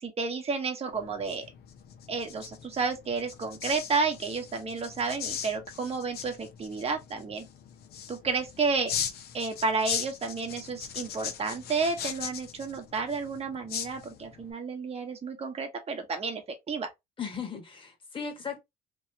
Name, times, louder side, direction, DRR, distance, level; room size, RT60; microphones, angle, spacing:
voice 1, 0.0-1.4 2.1-7.5 8.1-8.9 9.3-16.4 16.7-16.9, right 4 dB, 35° right, 1.0 m, -31 dB
sound 1, 0.9-14.5, left 8 dB, 65° left, 0.7 m, -39 dB
voice 2, 17.2-18.6, left 6 dB, 30° left, 1.4 m, -37 dB
3.1 x 2.8 x 2.7 m
cardioid pair, 110°, 17 cm